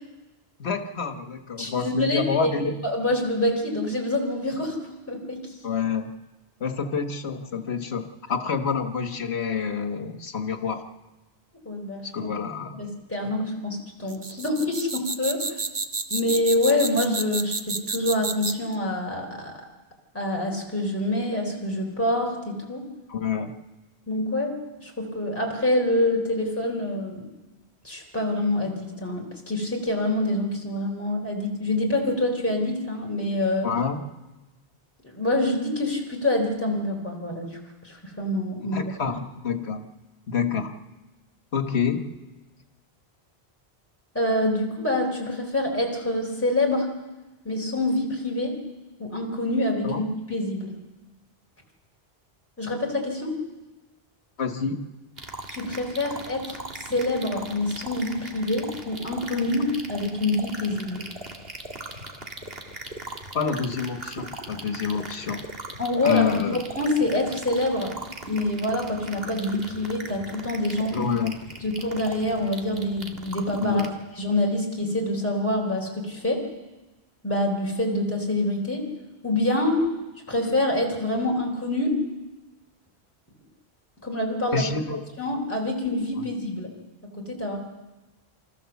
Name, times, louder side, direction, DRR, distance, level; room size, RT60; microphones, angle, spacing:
voice 1, 0.6-2.8 5.6-6.1 6.6-10.9 12.1-12.8 23.1-23.5 33.6-34.0 38.6-39.8 40.3-40.7 41.5-42.1 49.8-50.0 54.4-54.8 63.3-65.5 66.0-66.6 70.9-71.4 73.6-74.0 84.5-85.0, left 6 dB, 85° left, 6 dB, 1.6 m, -28 dB
voice 2, 1.6-2.5 2.8-4.8 5.1-5.4 11.7-12.3 12.8-15.6 16.1-19.5 20.1-22.9 24.1-24.5 24.8-27.3 27.8-33.7 35.0-37.6 37.8-38.8 44.1-46.9 47.4-48.6 49.0-50.7 52.6-53.4 55.5-56.6 56.9-61.1 65.8-66.3 66.5-67.9 68.2-70.9 71.6-73.9 74.2-76.4 77.2-78.8 79.2-79.8 80.3-82.0 84.0-86.7 87.2-87.6, left 1 dB, 15° left, 0 dB, 3.7 m, -26 dB
sound 1, 14.1-18.7, right 4 dB, 40° right, 1.1 m, -30 dB
sound 2, 55.2-73.9, right 2 dB, 65° right, 2.1 m, -39 dB
28.0 x 14.5 x 7.1 m, 1.1 s
omnidirectional pair, 1.1 m